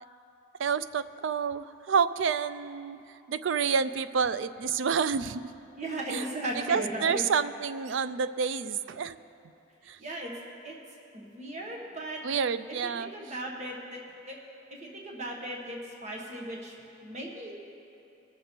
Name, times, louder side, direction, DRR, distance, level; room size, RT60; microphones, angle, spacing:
voice 1, 0.6-3.0 3.3-5.4 6.1-6.3 6.7-9.2 9.9-10.0 12.2-13.1, right 6 dB, 65° right, 14 dB, 0.4 m, -28 dB
voice 2, 5.8-7.3 10.0-10.3 10.6-10.8 11.1-12.2 12.8-14.0 14.3-14.4 14.7-16.8 17.0-17.6, right 1 dB, 35° right, -1 dB, 1.2 m, -37 dB
20.0 x 6.7 x 4.4 m, 2.8 s
head